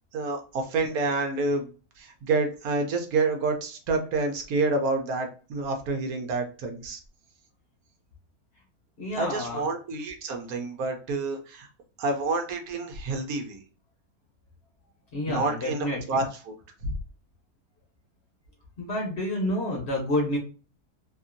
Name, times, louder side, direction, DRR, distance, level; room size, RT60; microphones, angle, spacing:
voice 1, 0.1-1.7 2.0-7.0 9.1-11.7 12.0-13.6 15.3-16.5 16.8-16.9, right 3 dB, 70° right, 4 dB, 1.1 m, -28 dB
voice 2, 9.0-9.6 15.1-16.2 18.8-20.4, left 1 dB, 50° left, -1 dB, 1.0 m, -29 dB
2.9 x 2.6 x 2.5 m, 0.37 s
omnidirectional pair, 1.7 m